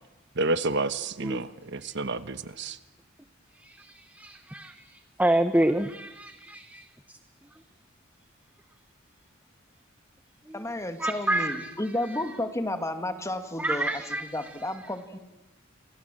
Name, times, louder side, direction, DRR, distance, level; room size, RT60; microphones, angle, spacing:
voice 1, 0.4-2.8, right 2 dB, 60° right, 1.2 m, -29 dB
voice 2, 3.6-6.8 10.5-10.6 11.0-11.7 13.6-14.4, right 1 dB, 10° right, 0.9 m, -28 dB
voice 3, 10.5-14.0 14.3-15.2, left 1 dB, 15° left, 2.1 m, -32 dB
28.5 x 27.0 x 7.7 m
head